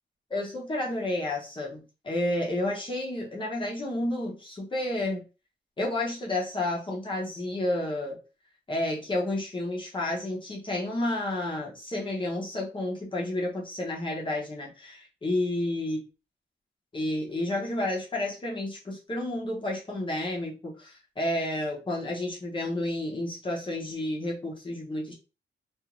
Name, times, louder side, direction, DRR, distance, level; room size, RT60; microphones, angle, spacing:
voice 1, 0.3-5.2 5.8-8.2 8.7-16.0 16.9-25.1, left 1 dB, 25° left, -3 dB, 0.7 m, -31 dB
2.5 x 2.4 x 2.9 m, 0.31 s
wide cardioid pair, 180°, 20 cm